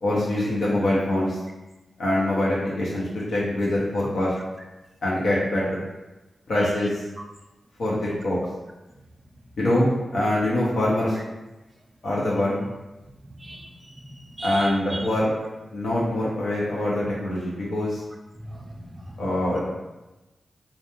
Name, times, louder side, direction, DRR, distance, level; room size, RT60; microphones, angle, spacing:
voice 1, 0.0-1.4 2.0-4.3 5.0-5.8 6.5-7.0 7.8-8.4 9.6-11.2 12.0-12.7 14.4-15.3 15.7-18.0 19.2-19.6, left 1 dB, 80° left, -7 dB, 0.5 m, -24 dB
voice 2, 13.3-15.1 18.4-19.3, right 1 dB, 25° right, 2 dB, 0.4 m, -38 dB
2.3 x 2.2 x 2.9 m, 1.1 s
cardioid pair, 55°, 0 cm